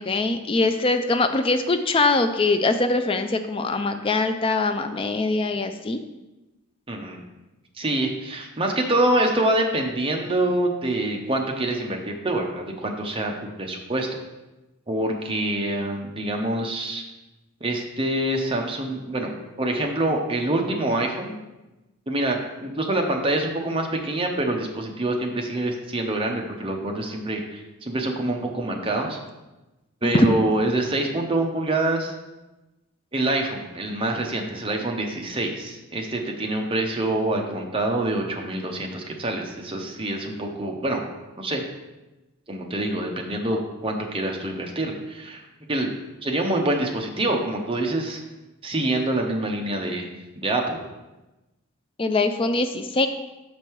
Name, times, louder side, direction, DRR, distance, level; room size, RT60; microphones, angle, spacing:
voice 1, 0.0-6.0 30.0-30.3 52.0-53.1, left 3 dB, 25° left, 8 dB, 0.3 m, -22 dB
voice 2, 6.9-7.2 7.8-13.3 13.6-14.1 14.9-17.0 17.6-21.3 22.1-29.2 30.0-32.1 33.1-41.0 41.4-41.6 42.5-45.4 45.7-45.9 46.2-48.2 48.6-50.1 50.4-50.8, right 1 dB, 25° right, 1 dB, 0.8 m, -26 dB
6.5 x 5.2 x 4.6 m, 1.1 s
head